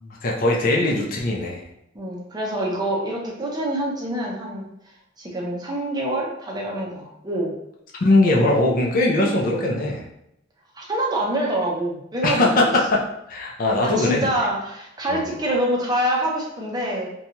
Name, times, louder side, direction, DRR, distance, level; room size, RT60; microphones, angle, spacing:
voice 1, 0.0-1.6 8.0-10.0 12.2-14.3 15.1-15.3, left 2 dB, 45° left, -1 dB, 0.5 m, -20 dB
voice 2, 1.9-4.7 5.2-7.5 10.8-12.7 13.8-17.1, right 1 dB, 20° right, -2 dB, 0.6 m, -26 dB
2.8 x 2.2 x 2.8 m, 0.80 s
head